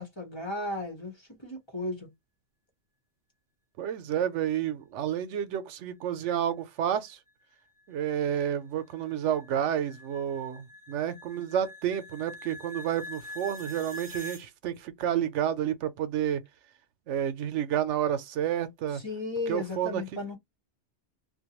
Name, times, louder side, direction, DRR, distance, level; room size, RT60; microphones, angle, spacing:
voice 1, 0.0-2.1 18.9-20.4, left 2 dB, 25° left, 0.9 m, -35 dB
voice 2, 3.8-7.2 7.9-16.4 17.1-19.0 19.5-20.0, right 10 dB, 90° right, 0.9 m, -30 dB
sound 1, 7.3-14.4, left 1 dB, 40° right, 0.8 m, -45 dB
2.5 x 2.2 x 2.9 m
omnidirectional pair, 1.2 m